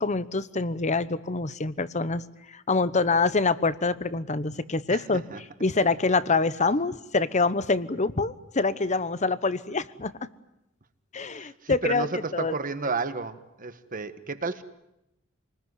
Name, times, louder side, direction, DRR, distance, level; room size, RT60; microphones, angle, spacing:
voice 1, 0.0-2.2 2.5-5.2 5.6-10.3 11.1-12.1 12.3-12.5, left 3 dB, 35° left, 15 dB, 1.0 m, -25 dB
voice 2, 11.3-14.6, right 4 dB, 40° right, 11 dB, 1.5 m, -32 dB
27.5 x 20.5 x 9.7 m, 0.87 s
head